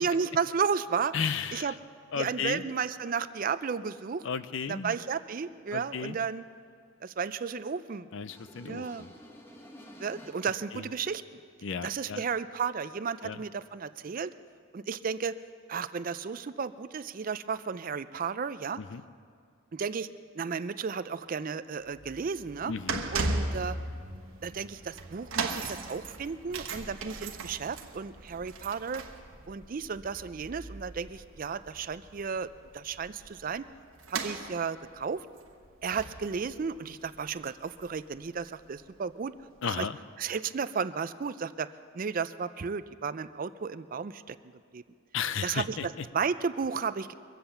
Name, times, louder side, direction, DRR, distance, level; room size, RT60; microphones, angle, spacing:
voice 1, 0.0-1.1 1.5-1.7 2.2-4.3 4.7-6.4 7.0-8.1 8.7-9.1 10.0-11.4 11.8-14.3 14.7-15.4 15.7-18.8 19.7-20.1 20.3-22.7 23.1-23.8 24.4-29.0 29.5-32.5 32.7-33.6 34.1-35.3 35.8-39.3 39.8-39.9 40.2-41.7 41.9-44.4 44.7-44.8 45.4-47.1, right 6 dB, 40° right, 14 dB, 0.4 m, -33 dB
voice 2, 1.1-1.8 2.1-2.6 4.2-4.9 5.7-6.2 8.1-9.1 10.7-10.9 11.6-12.2 13.2-13.4 18.8-19.0 22.7-23.1 39.6-40.0 45.1-46.1, left 6 dB, 65° left, 14 dB, 0.5 m, -34 dB
sound 1, 8.3-10.7, left 1 dB, 10° left, 1.1 m, -51 dB
sound 2, 21.8-38.2 38.4-38.7 39.4-39.5, right 3 dB, 80° right, 1.2 m, -38 dB
23.0 x 7.8 x 7.0 m, 2.2 s
head